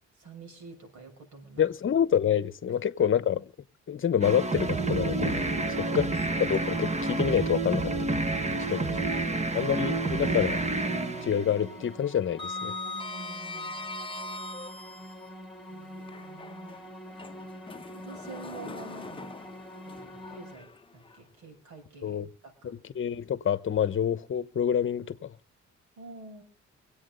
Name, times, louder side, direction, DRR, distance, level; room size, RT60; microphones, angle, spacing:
voice 1, 0.2-1.7 2.7-2.8 5.6-6.1 8.5-10.4 12.9-13.9 15.7-16.8 17.9-19.3 19.8-20.7 20.9-22.2 22.4-22.7 26.0-26.4, right 3 dB, 75° right, 6.4 m, -47 dB
voice 2, 1.6-3.5 3.9-5.4 5.9-6.1 6.4-8.3 8.7-8.9 9.5-10.6 11.2-12.7 22.0-22.3 22.6-25.3, left 9 dB, 40° left, 1.0 m, -27 dB
sound 1, 4.2-11.9, right 3 dB, 20° right, 1.3 m, -29 dB
Sliding door, 6.1-7.0 7.4-7.5 9.2-10.3 10.6-10.9 11.2-15.3 16.0-21.2, left 2 dB, 15° left, 0.9 m, -41 dB
sound 2, 9.8-20.5, equal, ahead, 2.9 m, -46 dB
25.5 x 8.7 x 3.9 m
cardioid pair, 90°, 30 cm